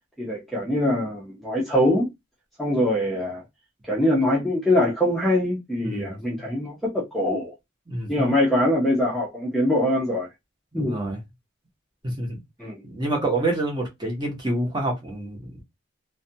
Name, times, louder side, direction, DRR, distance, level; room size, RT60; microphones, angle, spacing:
voice 1, 0.2-2.1 2.6-3.4 3.9-7.5 8.1-10.3 10.7-11.0 12.6-12.8, left 1 dB, ahead, 0.6 m, -23 dB
voice 2, 5.8-6.5 7.9-8.3 10.8-11.2 12.0-12.4 12.8-15.6, right 2 dB, 20° right, 0.9 m, -28 dB
2.4 x 2.2 x 2.7 m
head